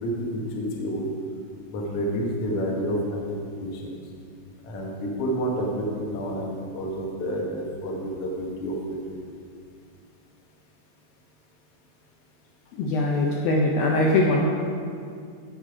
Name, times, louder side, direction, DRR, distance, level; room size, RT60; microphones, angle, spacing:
voice 1, 0.0-1.1 1.7-3.9 4.6-9.0, equal, 55° left, -2 dB, 1.7 m, -29 dB
voice 2, 12.7-14.5, left 2 dB, 75° left, -2 dB, 2.3 m, -22 dB
16.5 x 5.6 x 4.9 m, 2.3 s
omnidirectional pair, 5.0 m